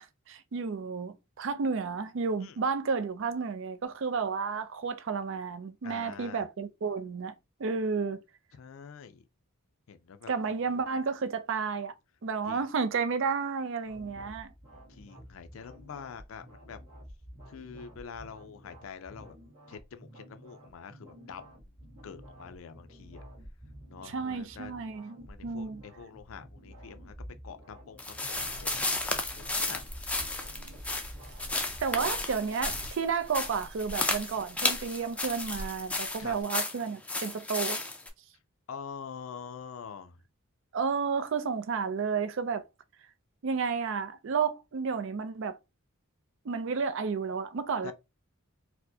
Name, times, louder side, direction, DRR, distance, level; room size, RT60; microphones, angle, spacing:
voice 1, 0.0-7.3 7.6-8.2 10.3-11.9 12.2-14.5 24.0-25.8 31.8-37.8 40.7-42.6 43.4-45.6 46.5-47.9, right 5 dB, 60° right, 0.4 m, -32 dB
voice 2, 5.8-6.4 8.6-9.2 9.9-10.3 10.7-10.8 12.4-12.6 14.9-16.8 17.5-19.4 19.7-21.7 22.0-23.2 23.9-24.7 25.3-27.1 27.4-29.8 36.2-36.4 38.7-40.2 47.8-47.9, left 6 dB, 70° left, 0.4 m, -45 dB
sound 1, 13.8-32.1, equal, 30° right, 1.5 m, -50 dB
sound 2, 28.0-38.1, left 2 dB, 5° left, 0.4 m, -33 dB
sound 3, 28.3-36.4, equal, 90° right, 0.9 m, -47 dB
4.3 x 2.1 x 2.7 m
head